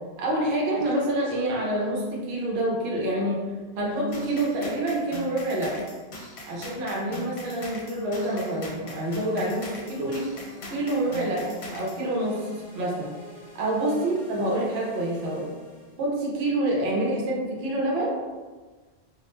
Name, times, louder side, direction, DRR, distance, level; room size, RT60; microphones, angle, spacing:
voice 1, 0.2-3.4 3.8-5.8 6.5-10.3 10.7-12.5 12.7-13.1 13.5-15.5 16.0-18.2, right 1 dB, 70° right, -3 dB, 0.8 m, -27 dB
sound 1, 4.1-12.0, left 1 dB, 75° left, 0.8 m, -40 dB
sound 2, 9.0-16.1, left 1 dB, 50° left, 0.8 m, -48 dB
2.4 x 2.0 x 3.0 m, 1.3 s
omnidirectional pair, 1.1 m